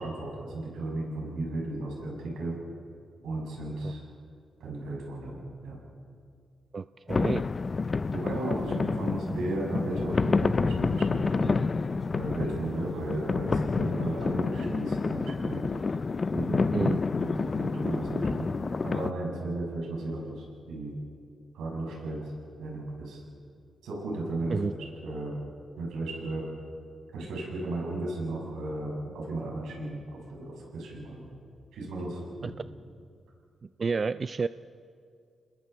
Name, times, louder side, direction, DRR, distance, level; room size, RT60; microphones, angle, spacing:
voice 1, 0.0-2.6 3.2-4.0 4.6-5.8 8.1-11.6 12.1-15.6 16.3-16.9 17.1-18.4 18.8-20.9 21.5-22.3 22.6-23.2 23.8-25.3 25.8-26.4 27.1-31.3 31.7-32.5, right 2 dB, 90° right, -2 dB, 6.8 m, -34 dB
voice 2, 6.7-7.5 16.7-17.0 24.5-24.7 32.4-32.5 33.8-34.5, right 4 dB, 50° right, 13 dB, 0.5 m, -30 dB
sound 1, 7.1-19.1, left 4 dB, 45° left, 0.6 m, -29 dB
29.5 x 20.5 x 4.6 m, 2.3 s
supercardioid pair, 50°, 0 cm